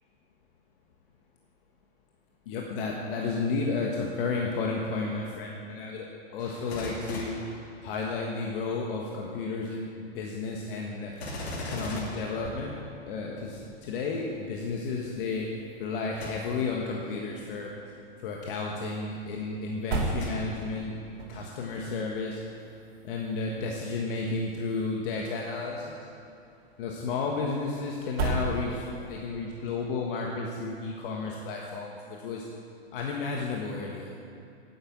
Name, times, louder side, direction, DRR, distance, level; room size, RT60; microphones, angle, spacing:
voice 1, 2.4-6.1 6.3-7.3 7.8-9.9 10.1-11.1 11.6-12.8 13.1-15.5 15.8-17.7 18.2-21.0 21.3-22.4 23.0-26.0 26.8-32.4 32.9-34.1, left 4 dB, 55° left, -1 dB, 1.5 m, -32 dB
Gunshot gunfire, 6.4-8.4 11.1-13.2 16.1-16.8 17.4-17.5 20.1-20.9 21.5-21.6, left 1 dB, 80° left, 2.6 m, -40 dB
sound 1, 11.1-29.2, right 3 dB, 70° right, 2.8 m, -40 dB
9.6 x 8.7 x 7.4 m, 2.6 s
hypercardioid pair, 120°, 32 cm